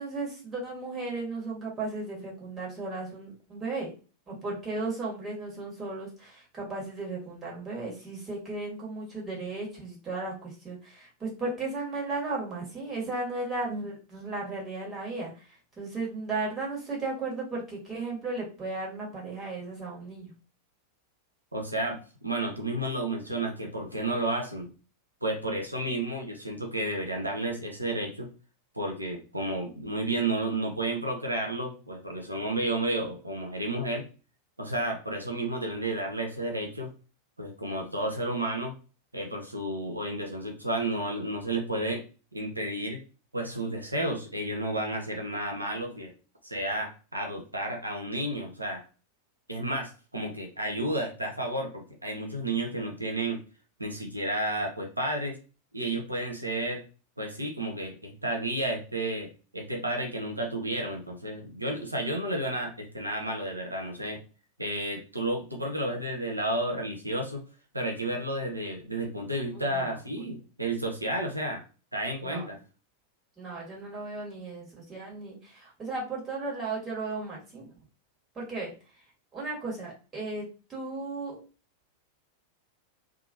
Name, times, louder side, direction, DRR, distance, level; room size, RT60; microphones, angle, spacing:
voice 1, 0.0-3.9 4.3-20.3 69.5-70.0 72.2-72.5 73.4-77.7 78.3-79.0 79.3-81.4, right 3 dB, 20° right, -4 dB, 1.4 m, -35 dB
voice 2, 21.5-24.7 25.2-28.3 28.7-34.1 34.6-36.9 37.4-38.7 39.1-42.0 42.3-43.0 43.3-46.1 46.4-48.8 49.5-53.4 53.8-55.4 55.7-56.8 57.2-64.2 64.6-67.4 67.7-71.6 71.9-72.6, right 1 dB, 85° right, 1 dB, 0.6 m, -31 dB
2.7 x 2.4 x 2.5 m, 0.35 s
figure-of-eight pair, 90°, 0 cm